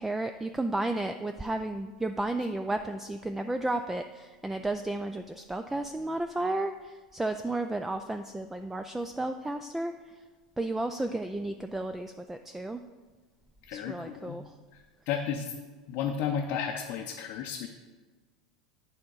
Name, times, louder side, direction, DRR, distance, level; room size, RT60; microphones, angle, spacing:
voice 1, 0.0-10.2 10.6-12.8 13.7-14.5, right 2 dB, 5° right, 8 dB, 0.3 m, -33 dB
voice 2, 13.6-14.4 14.7-15.5 15.9-17.7, left 7 dB, 55° left, 2 dB, 0.6 m, -33 dB
8.4 x 3.7 x 6.1 m, 1.3 s
hypercardioid pair, 85°, 4 cm